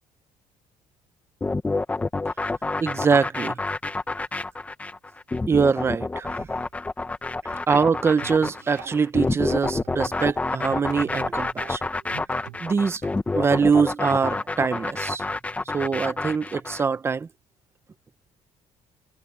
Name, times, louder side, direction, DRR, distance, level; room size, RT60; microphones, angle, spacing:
sound 1, 1.4-16.8, left 3 dB, 10° left, 1.0 m, -28 dB
voice 1, 2.8-3.6 5.5-6.3 7.7-11.8 12.6-13.0 13.3-15.3 15.7-17.3, right 5 dB, 20° right, 0.7 m, -23 dB
sound 2, 8.2-13.8, right 17 dB, 90° right, 1.6 m, -44 dB
cardioid pair, 165°, 13 cm